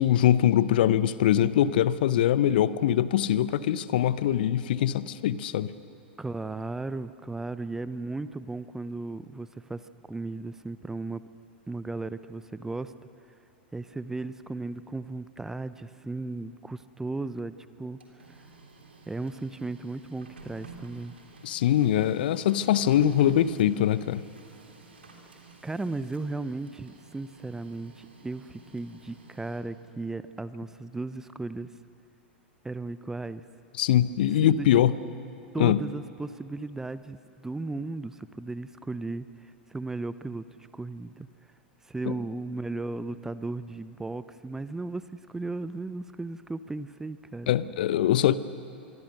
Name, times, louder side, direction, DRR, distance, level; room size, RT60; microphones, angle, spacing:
voice 1, 0.0-5.7 21.4-24.2 33.8-34.9 35.6-35.8 42.1-42.2 47.5-48.4, left 11 dB, 55° left, 16 dB, 0.8 m, -23 dB
voice 2, 6.2-11.2 11.7-12.9 13.7-18.0 18.3-18.4 19.1-21.1 25.6-31.7 32.6-33.4 34.4-34.8 35.5-40.5 40.7-41.3 41.8-47.5, right 3 dB, 10° right, 14 dB, 0.6 m, -35 dB
Printer, 17.8-29.9, right 3 dB, 75° right, 3.6 m, -51 dB
26.0 x 23.0 x 6.5 m, 2.9 s
figure-of-eight pair, 95°, 6 cm